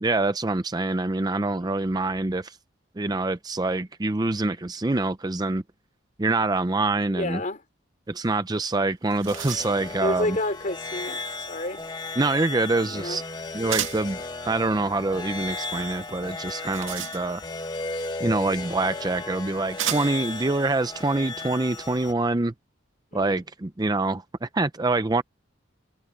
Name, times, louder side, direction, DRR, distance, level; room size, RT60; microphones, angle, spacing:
voice 1, 0.0-2.6 3.0-5.6 6.2-7.4 8.1-10.4 12.2-13.2 13.5-14.2 14.4-17.4 18.2-22.5 23.1-25.2, right 2 dB, 20° right, 0.5 m, -25 dB
voice 2, 7.1-7.6 10.0-11.2 11.5-11.8 12.8-13.2 23.1-23.4, left 1 dB, 40° left, 3.2 m, -29 dB
sound 1, 8.6-8.7 8.9-9.9 13.7-14.2 16.4-17.6 18.7-18.8 19.8-20.3, right 11 dB, 85° right, 2.1 m, -33 dB
sound 2, 9.3-22.1, left 3 dB, 20° left, 1.6 m, -35 dB
open air
head